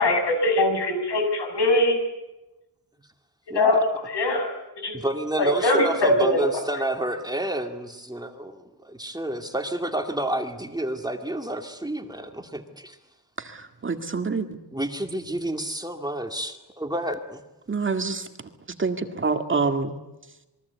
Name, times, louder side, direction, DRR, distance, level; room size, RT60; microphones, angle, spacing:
voice 1, 0.0-2.0 3.5-4.5 4.8-5.0 5.4-6.5, left 1 dB, 85° left, 6 dB, 7.3 m, -22 dB
voice 2, 3.5-3.8 4.9-13.0 14.7-17.4, right 1 dB, 10° right, 5 dB, 2.2 m, -29 dB
voice 3, 13.4-14.6 17.7-18.3 18.8-19.9, right 4 dB, 30° right, 6 dB, 2.0 m, -26 dB
27.5 x 22.5 x 8.3 m, 1.0 s
wide cardioid pair, 180°, 40 cm